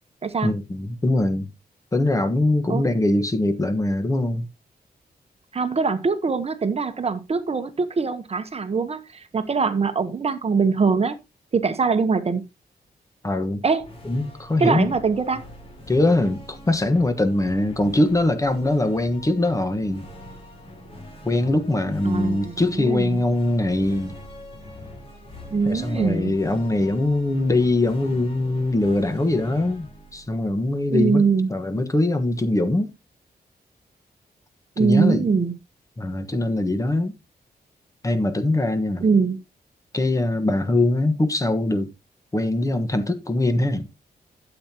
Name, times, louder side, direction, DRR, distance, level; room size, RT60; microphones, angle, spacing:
voice 1, 0.4-1.5 1.9-4.5 13.2-13.6 14.0-14.9 15.9-20.1 21.2-24.1 25.6-31.2 31.5-32.9 34.8-35.3 36.0-37.1 38.0-39.0 39.9-41.9 42.3-43.9, left 2 dB, 20° left, 1.3 m, -22 dB
voice 2, 5.5-11.2 11.5-12.4 13.6-13.8 14.6-15.4 22.0-23.2 25.5-26.3 30.9-31.5 34.8-35.5 39.0-39.4, right 5 dB, 40° right, 1.0 m, -22 dB
sound 1, 13.8-31.2, left 1 dB, 35° left, 3.9 m, -42 dB
12.5 x 8.0 x 2.9 m
wide cardioid pair, 155°, 17 cm